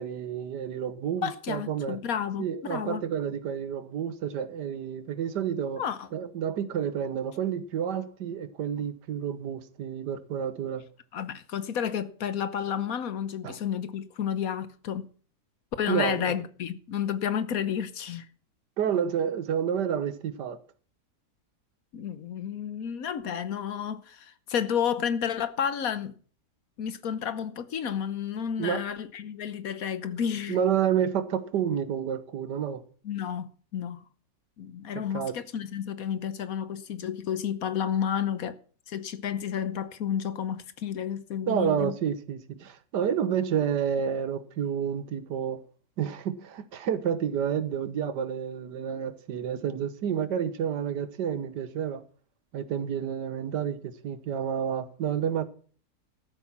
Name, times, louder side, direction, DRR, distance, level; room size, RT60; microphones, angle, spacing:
voice 1, 0.0-2.0 2.4-5.8 6.1-10.8 13.4-13.6 15.9-16.3 18.8-20.6 28.6-28.8 30.5-32.8 35.1-35.4 41.5-45.6 46.0-52.0 52.5-55.5, right 8 dB, 85° right, 1.6 m, -29 dB
voice 2, 1.2-3.0 5.8-6.1 11.1-15.1 15.8-18.3 21.9-26.1 26.8-30.6 33.0-34.0 34.6-38.6 38.9-41.9, left 8 dB, 60° left, 1.3 m, -31 dB
13.5 x 8.4 x 6.0 m
omnidirectional pair, 1.8 m